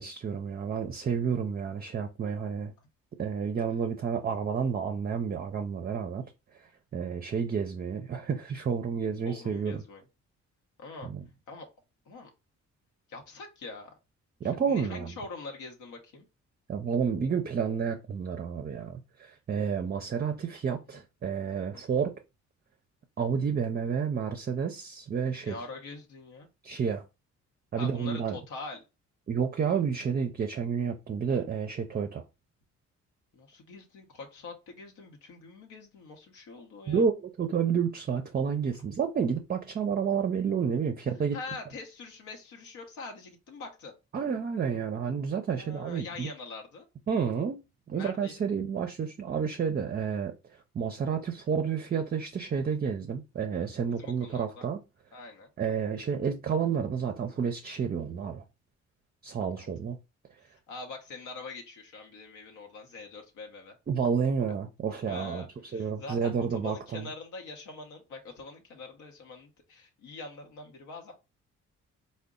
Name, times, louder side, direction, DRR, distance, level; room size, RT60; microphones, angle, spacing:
voice 1, 0.0-2.7 3.2-9.8 11.0-11.2 14.4-15.1 16.7-22.2 23.2-25.6 26.6-27.0 27.7-28.4 29.3-32.2 36.9-41.4 44.1-46.3 47.1-47.6 47.9-54.8 55.6-58.4 59.2-60.0 63.9-67.1, right 6 dB, 30° right, 0.5 m, -30 dB
voice 2, 9.2-10.0 10.8-11.1 11.5-11.7 12.1-12.3 13.1-13.9 14.4-16.3 20.9-21.0 21.7-22.0 25.4-26.5 27.8-28.8 33.3-37.1 41.3-44.0 45.4-46.9 47.9-48.3 54.0-54.7 55.1-55.5 59.6-59.7 60.5-63.8 65.1-71.1, left 3 dB, 80° left, 0.9 m, -44 dB
3.8 x 2.1 x 3.7 m
cardioid pair, 90°, 30 cm